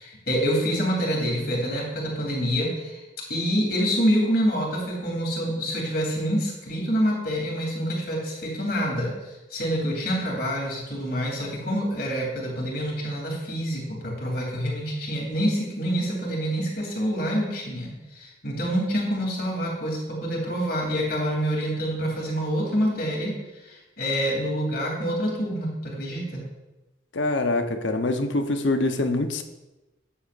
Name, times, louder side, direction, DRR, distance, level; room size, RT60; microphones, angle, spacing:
voice 1, 0.0-3.0 3.3-9.1 9.5-26.4, equal, 55° left, 3.1 m, -27 dB
voice 2, 27.1-29.4, left 2 dB, 80° left, 0.9 m, -24 dB
13.5 x 9.8 x 2.6 m
head